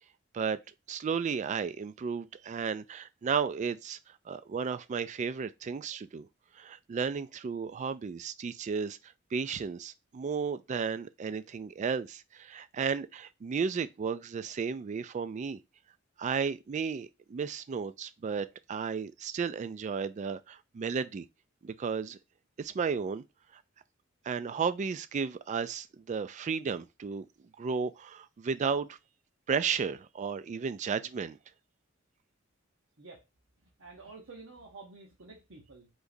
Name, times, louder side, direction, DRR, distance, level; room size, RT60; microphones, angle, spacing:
voice 1, 0.9-6.3 6.6-15.6 16.2-21.3 21.6-22.2 22.6-23.2 23.5-23.6 24.2-27.3 27.6-29.0 29.5-31.4, right 6 dB, 35° right, 0.3 m, -33 dB
voice 2, 33.6-35.9, right 3 dB, 85° right, 1.0 m, -50 dB
5.0 x 3.9 x 2.6 m
head